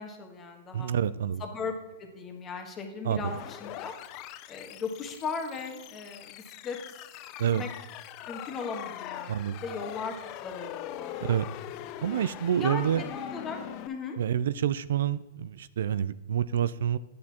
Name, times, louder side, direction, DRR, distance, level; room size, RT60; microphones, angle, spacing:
voice 1, 0.0-0.9 1.4-1.7 2.0-3.9 4.5-6.8 7.4-7.7 8.3-10.2 10.4-11.4 12.6-13.6 13.9-14.2, left 5 dB, 25° left, 4 dB, 1.3 m, -37 dB
voice 2, 0.7-1.4 3.0-3.3 7.4-7.6 9.3-9.6 11.2-11.5 12.0-13.0 14.2-17.0, right 9 dB, 75° right, 16 dB, 0.3 m, -28 dB
sound 1, 3.2-13.9, left 13 dB, 40° left, 0.4 m, -42 dB
9.4 x 8.3 x 2.9 m, 1.1 s
hypercardioid pair, 140°, 0 cm